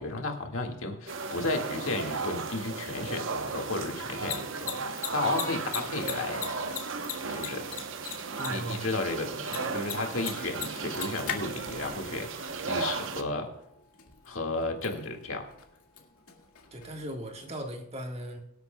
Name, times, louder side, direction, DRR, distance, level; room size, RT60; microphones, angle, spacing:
voice 1, 0.0-6.4 7.3-7.6 8.5-13.5 14.3-15.5, left 2 dB, 65° left, 3 dB, 1.9 m, -33 dB
sound 1, 1.1-13.2, right 4 dB, 60° right, 0.9 m, -35 dB
Mechanisms, 4.0-17.6, left 9 dB, 85° left, 2.0 m, -42 dB
voice 2, 8.3-8.9 16.7-18.4, equal, 30° right, 3 dB, 1.6 m, -38 dB
23.5 x 8.8 x 2.3 m, 0.81 s
head